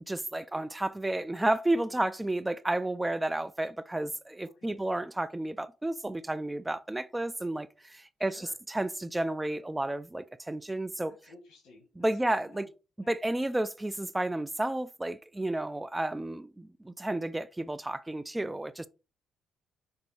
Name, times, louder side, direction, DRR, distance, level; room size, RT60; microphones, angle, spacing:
voice 1, 0.1-11.2 12.0-12.7 13.1-18.9, right 1 dB, 10° right, 0.3 m, -32 dB
voice 2, 4.4-4.8 8.2-8.5 11.1-12.1 12.5-12.7 13.0-13.1, left 3 dB, 80° left, 1.3 m, -55 dB
6.1 x 2.7 x 3.2 m
cardioid pair, 90°, 0 cm